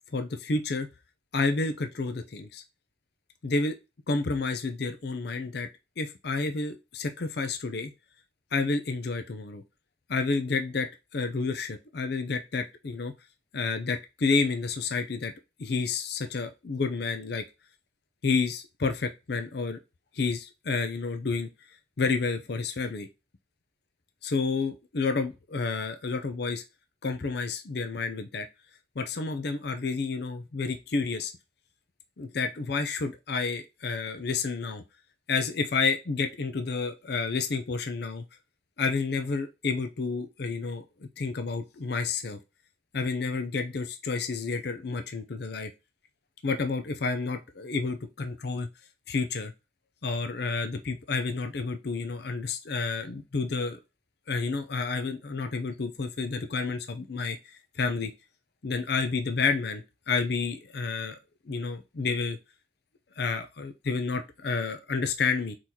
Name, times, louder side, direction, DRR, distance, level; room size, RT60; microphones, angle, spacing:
voice 1, 0.1-0.9 1.3-2.6 3.4-3.8 4.1-5.7 6.0-7.9 8.5-9.6 10.1-13.1 13.5-15.3 15.6-17.4 18.2-19.8 20.1-21.5 22.0-23.1 24.2-26.6 27.0-28.5 29.0-31.3 32.2-34.8 35.3-38.2 38.8-42.4 42.9-45.7 46.4-48.7 49.1-49.5 50.0-53.8 54.3-58.1 58.6-61.2 61.5-62.4 63.2-65.6, left 4 dB, 55° left, 8 dB, 0.5 m, -30 dB
4.6 x 3.9 x 2.8 m, 0.26 s
head